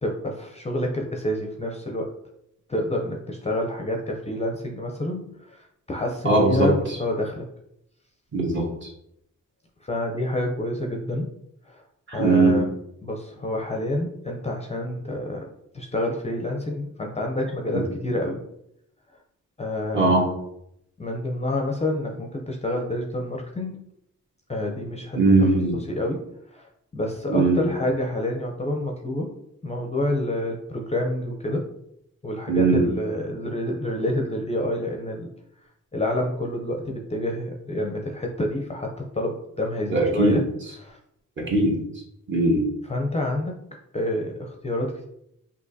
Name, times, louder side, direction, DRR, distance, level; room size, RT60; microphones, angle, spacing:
voice 1, 0.0-2.1 2.7-7.4 9.8-11.3 11.7-11.8 12.1-12.7 13.0-15.5 15.7-18.4 19.6-20.2 21.0-23.8 24.5-25.2 25.9-26.2 26.5-29.3 29.6-31.7 32.2-35.3 35.9-40.4 40.8-41.0 42.8-43.5 43.9-45.0, left 1 dB, 20° left, 1 dB, 0.5 m, -28 dB
voice 2, 6.2-6.7 8.3-8.7 12.1-12.6 17.7-17.8 19.9-20.3 25.1-25.8 27.3-27.6 32.5-32.8 39.9-40.4 41.4-41.8 42.3-42.7, right 2 dB, 40° right, -2 dB, 1.3 m, -19 dB
6.0 x 2.8 x 2.7 m, 0.78 s
wide cardioid pair, 125°, 31 cm